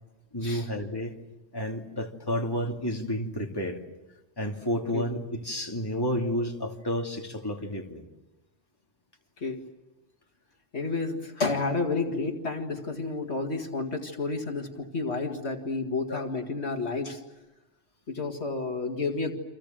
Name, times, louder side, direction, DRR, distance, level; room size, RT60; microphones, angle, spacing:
voice 1, 0.3-1.2 1.5-3.8 4.4-8.1 16.1-16.2, equal, 20° left, 1 dB, 2.7 m, -31 dB
voice 2, 10.7-17.2 18.1-19.3, left 3 dB, 65° left, 3 dB, 2.3 m, -30 dB
29.0 x 26.0 x 7.6 m, 1.1 s
omnidirectional pair, 1.2 m